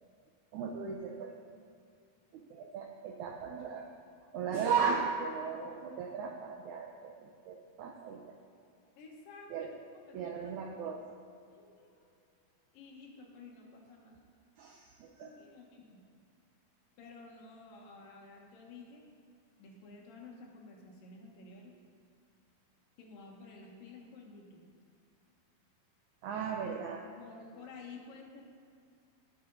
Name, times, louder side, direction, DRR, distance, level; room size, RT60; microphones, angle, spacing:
voice 1, 0.5-1.3 2.5-3.9 4.3-8.2 9.5-9.7 10.1-11.0 14.6-15.3 26.2-27.1, right 6 dB, 80° right, 1 dB, 1.7 m, -36 dB
voice 2, 9.0-9.7 9.9-10.6 11.5-12.1 12.7-14.2 15.2-16.0 17.0-19.0 19.6-21.7 23.0-24.6 27.1-28.4, left 3 dB, 75° left, -1 dB, 2.9 m, -52 dB
16.5 x 5.7 x 4.0 m, 2.3 s
omnidirectional pair, 4.1 m